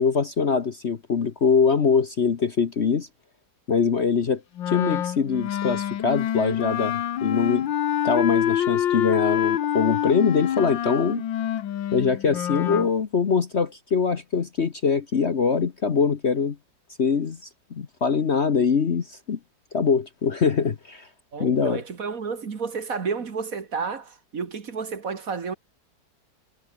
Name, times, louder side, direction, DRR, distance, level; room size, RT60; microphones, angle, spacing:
voice 1, 0.0-3.1 3.7-4.4 4.7-7.7 8.0-11.2 11.9-16.6 17.0-17.4 17.7-19.4 19.7-21.1 21.4-21.8, left 5 dB, 40° left, 1.2 m, -23 dB
Wind instrument woodwind instrument, 4.6-12.9, left 10 dB, 90° left, 1.8 m, -26 dB
voice 2, 21.3-25.5, right 5 dB, 50° right, 2.0 m, -31 dB
omnidirectional pair, 2.0 m